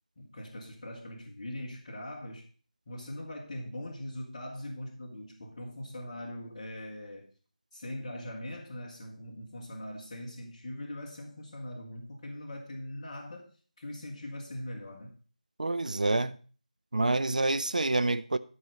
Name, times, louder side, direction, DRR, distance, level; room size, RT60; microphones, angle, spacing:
voice 1, 0.2-2.5 2.9-7.3 7.7-13.5 13.8-15.2, left 1 dB, 35° left, 1.7 m, -41 dB
voice 2, 15.6-16.4 16.9-18.4, right 2 dB, 70° right, 0.6 m, -27 dB
12.5 x 4.8 x 5.4 m
figure-of-eight pair, 165°, 4 cm